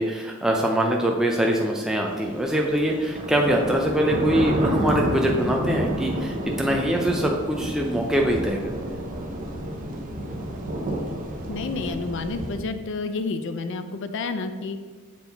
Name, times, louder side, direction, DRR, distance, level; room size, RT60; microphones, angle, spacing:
voice 1, 0.0-9.0, right 1 dB, 5° right, 0 dB, 0.4 m, -23 dB
sound 1, 2.3-12.6, right 1 dB, 40° right, 0.8 m, -29 dB
voice 2, 11.5-14.8, left 3 dB, 60° left, 9 dB, 0.5 m, -30 dB
7.1 x 4.7 x 3.9 m, 1.5 s
head